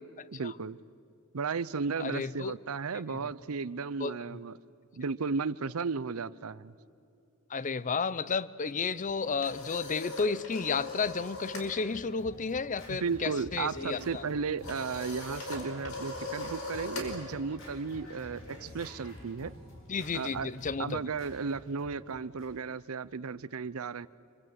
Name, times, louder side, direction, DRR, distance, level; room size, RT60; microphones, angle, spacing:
voice 1, 0.3-0.8 1.3-4.5 4.9-6.7 12.9-19.5 20.1-20.5 20.8-24.1, right 5 dB, 75° right, 17 dB, 0.6 m, -34 dB
voice 2, 2.0-2.6 3.1-3.2 4.0-4.4 7.5-14.2 19.9-21.0, left 5 dB, 35° left, 18 dB, 0.6 m, -32 dB
sound 1, 9.0-11.7 12.0-12.3 12.6-19.2, left 2 dB, 85° left, 5.1 m, -41 dB
Scratching (performance technique), 11.0-22.8, left 1 dB, 65° left, 7.8 m, -50 dB
26.5 x 24.5 x 8.0 m, 2.6 s
head